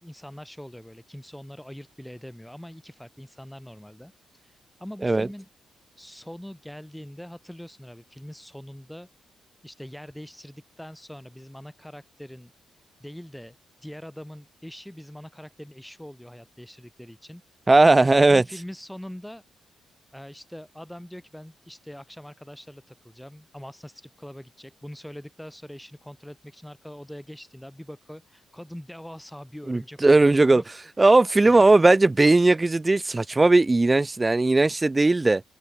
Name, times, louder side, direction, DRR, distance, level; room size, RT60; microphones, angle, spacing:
voice 1, 0.0-5.5 6.0-9.1 9.6-12.5 13.0-13.6 13.8-17.4 18.0-19.4 20.1-30.7 31.4-31.9, equal, 5° left, 5.4 m, -43 dB
voice 2, 17.7-18.4 29.7-30.6 31.0-35.4, right 2 dB, 25° right, 0.6 m, -18 dB
hypercardioid pair, 40°, 0 cm